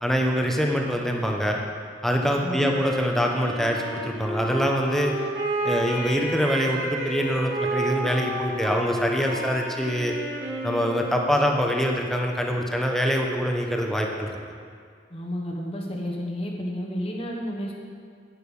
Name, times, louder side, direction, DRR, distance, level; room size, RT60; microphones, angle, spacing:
voice 1, 0.0-1.6 2.0-5.1 5.6-10.1 10.6-14.4, equal, ahead, 1 dB, 1.0 m, -24 dB
Wind instrument woodwind instrument, 2.6-11.4, right 2 dB, 90° right, 2.9 m, -31 dB
voice 2, 15.1-17.7, equal, 30° left, -1 dB, 1.2 m, -31 dB
11.0 x 9.1 x 5.4 m, 2.1 s
head